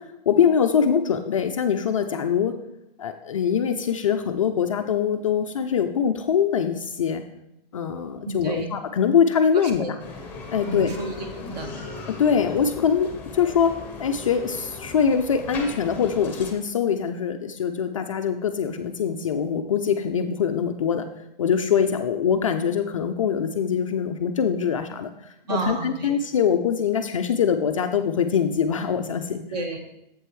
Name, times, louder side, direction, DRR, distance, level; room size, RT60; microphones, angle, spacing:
voice 1, 0.0-2.6 3.0-7.2 7.7-10.0 10.5-10.9 12.1-13.7 14.0-21.1 21.4-29.4, left 7 dB, 35° left, 6 dB, 0.4 m, -23 dB
voice 2, 8.2-8.7 9.6-9.9 10.6-11.7 25.4-26.2 29.5-29.8, right 3 dB, 45° right, 4 dB, 1.5 m, -31 dB
Bicycle, 10.0-16.5, left 3 dB, 5° left, 0.9 m, -38 dB
7.8 x 7.6 x 3.1 m, 0.85 s
hypercardioid pair, 155°, 30 cm